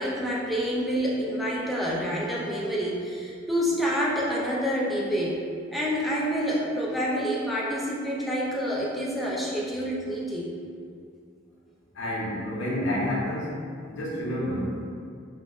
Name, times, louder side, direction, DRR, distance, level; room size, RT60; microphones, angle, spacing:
voice 1, 0.0-5.4 5.7-10.5, equal, ahead, -6 dB, 0.3 m, -28 dB
voice 2, 11.9-13.5 13.9-14.9, left 1 dB, 80° left, -6 dB, 0.7 m, -29 dB
3.3 x 2.1 x 2.4 m, 2.3 s
head